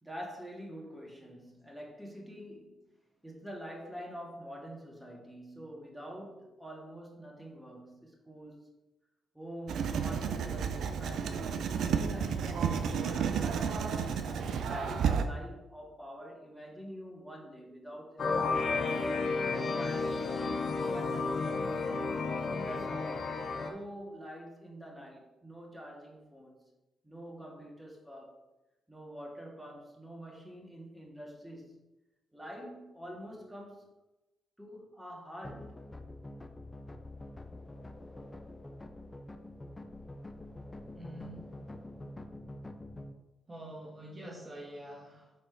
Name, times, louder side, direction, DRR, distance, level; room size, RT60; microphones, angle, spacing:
voice 1, 0.0-2.8 3.2-8.7 9.3-14.0 14.5-19.0 19.4-21.9 22.5-23.4 23.6-26.7 27.0-28.4 28.9-31.8 32.3-33.9 34.6-35.8, equal, 5° right, -3 dB, 2.0 m, -46 dB
Writing, 9.7-15.2, right 6 dB, 70° right, 0.5 m, -31 dB
sound 1, 18.2-23.7, left 4 dB, 55° left, 0.9 m, -32 dB
sound 2, 35.4-43.1, left 1 dB, 25° left, 0.7 m, -46 dB
voice 2, 40.9-41.5 43.5-45.3, right 1 dB, 30° right, -2 dB, 1.8 m, -46 dB
5.2 x 4.4 x 4.6 m, 0.98 s
hypercardioid pair, 45°, 0 cm